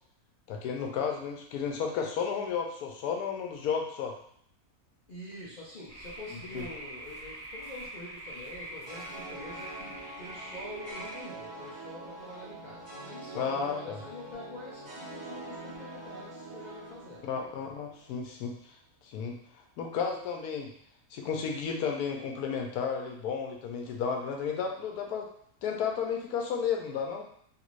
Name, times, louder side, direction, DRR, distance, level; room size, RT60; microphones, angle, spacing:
voice 1, 0.5-4.2 6.5-6.6 13.3-14.0 17.2-18.8 19.0-19.4 19.8-20.7 21.1-25.3 25.6-27.3, left 6 dB, 85° left, 2 dB, 1.1 m, -33 dB
voice 2, 5.1-17.3 17.6-17.8, left 1 dB, 70° left, -6 dB, 0.4 m, -46 dB
sound 1, 5.9-11.2, right 1 dB, 30° right, 1.2 m, -44 dB
sound 2, 8.9-18.2, right 2 dB, 65° right, 1.7 m, -44 dB
3.4 x 2.5 x 3.0 m, 0.65 s
omnidirectional pair, 1.6 m